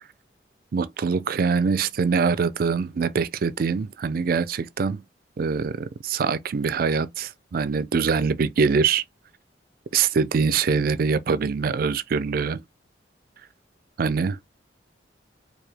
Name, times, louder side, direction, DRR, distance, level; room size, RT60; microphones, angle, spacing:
voice 1, 0.7-5.0 5.4-9.0 9.9-12.6 14.0-14.4, right 5 dB, 55° right, 0.4 m, -23 dB
4.7 x 2.3 x 3.3 m
head